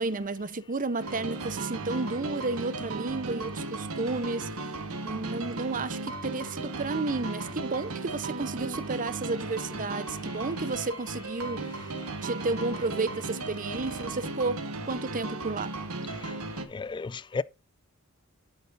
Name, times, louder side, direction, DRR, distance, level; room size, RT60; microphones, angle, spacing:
voice 1, 0.0-4.5 5.0-11.7 12.2-14.6 14.9-15.7, right 3 dB, 40° right, 0.8 m, -32 dB
sound 1, 1.0-16.7, right 3 dB, 70° right, 1.4 m, -36 dB
voice 2, 16.7-17.4, left 4 dB, 20° left, 0.3 m, -32 dB
10.0 x 8.3 x 2.6 m
head